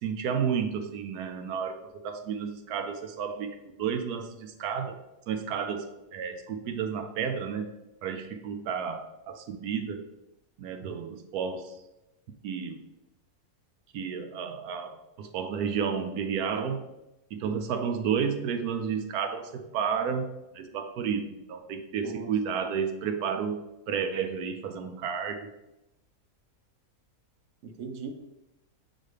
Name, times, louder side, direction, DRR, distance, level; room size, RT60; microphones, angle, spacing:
voice 1, 0.0-5.0 5.3-7.7 8.0-10.1 10.6-11.7 12.4-12.8 13.9-16.9 17.3-25.5, right 7 dB, 85° right, 6 dB, 1.1 m, -32 dB
voice 2, 27.6-28.1, right 5 dB, 60° right, 5 dB, 1.0 m, -38 dB
7.3 x 4.0 x 3.3 m, 0.94 s
omnidirectional pair, 1.6 m